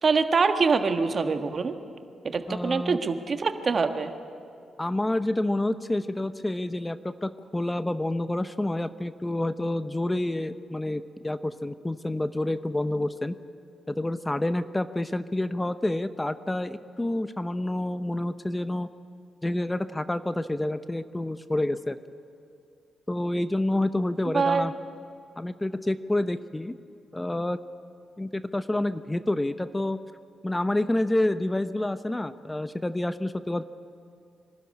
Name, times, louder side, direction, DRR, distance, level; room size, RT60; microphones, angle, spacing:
voice 1, 0.0-1.7 2.3-4.1 24.3-24.7, right 4 dB, 50° right, 7 dB, 1.5 m, -24 dB
voice 2, 2.5-3.0 4.8-13.3 13.9-18.9 19.4-22.0 23.1-24.7 25.4-26.7 27.1-27.6 28.2-30.0 30.4-33.6, left 1 dB, 15° left, 12 dB, 0.8 m, -28 dB
24.0 x 13.0 x 9.8 m, 2.4 s
hypercardioid pair, 45°, 0 cm